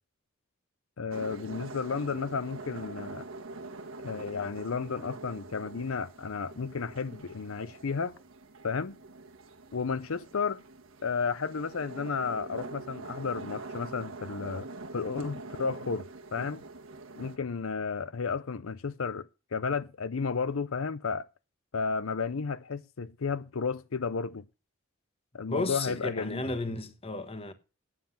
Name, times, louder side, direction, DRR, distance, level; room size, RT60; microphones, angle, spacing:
voice 1, 1.0-3.3 4.0-8.1 8.6-9.0 9.7-10.6 11.0-16.6 17.2-21.3 21.7-24.4 25.3-26.4, left 5 dB, 80° left, 0.6 m, -33 dB
sound 1, 1.1-17.4, right 3 dB, 75° right, 1.4 m, -44 dB
voice 2, 25.5-27.5, left 2 dB, 30° left, 1.3 m, -33 dB
9.7 x 7.4 x 7.2 m
head